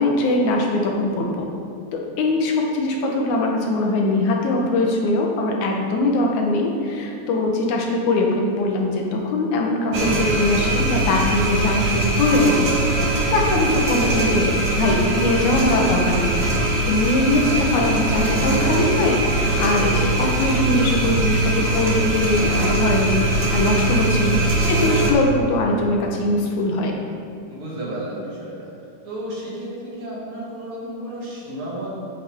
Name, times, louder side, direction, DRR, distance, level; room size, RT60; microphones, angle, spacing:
voice 1, 0.0-1.5 1.9-12.7 13.3-26.9, left 2 dB, 80° left, 0 dB, 2.5 m, -21 dB
sound 1, 9.9-25.1, right 2 dB, 50° right, 1.5 m, -21 dB
voice 2, 24.1-24.7 27.5-28.7 29.1-32.0, right 1 dB, 70° right, -7 dB, 3.7 m, -32 dB
9.6 x 8.5 x 3.6 m, 2.5 s
omnidirectional pair, 3.4 m